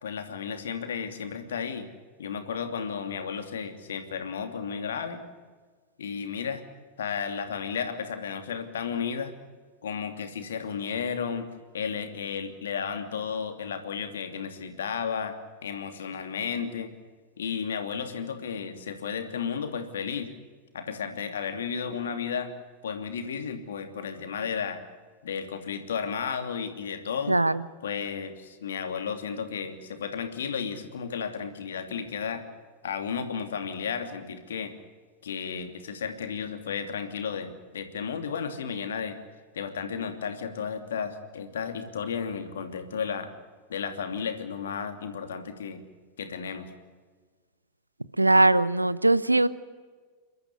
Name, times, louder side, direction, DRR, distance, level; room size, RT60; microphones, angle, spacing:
voice 1, 0.0-1.9 2.2-5.2 6.0-6.6 7.0-9.3 9.8-11.5 11.7-15.3 15.6-16.9 17.4-20.3 20.7-22.5 22.8-24.8 25.2-27.4 27.8-32.4 32.8-34.7 35.2-39.2 39.5-43.3 43.7-45.9 46.2-46.7, left 6 dB, 65° left, 7 dB, 2.8 m, -33 dB
voice 2, 27.3-27.6 48.2-49.5, right 2 dB, 85° right, 17 dB, 0.9 m, -20 dB
29.0 x 13.5 x 10.0 m, 1.4 s
figure-of-eight pair, 90°, 0 cm